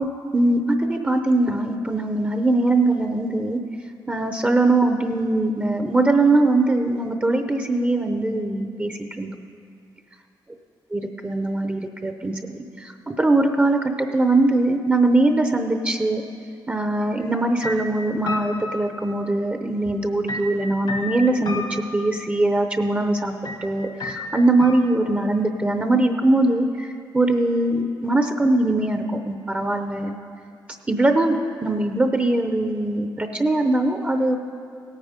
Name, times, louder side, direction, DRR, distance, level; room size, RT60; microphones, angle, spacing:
voice 1, 0.0-3.6 4.1-9.3 10.9-16.2 16.7-23.3 23.6-30.2 30.9-34.4, right 2 dB, 20° right, 6 dB, 0.7 m, -21 dB
sound 1, 17.2-17.4 17.6-19.5 20.3-22.3 23.4-23.6 24.0-25.3, left 2 dB, 65° left, 1.4 m, -33 dB
17.0 x 9.1 x 5.1 m, 2.4 s
cardioid pair, 95°, 8 cm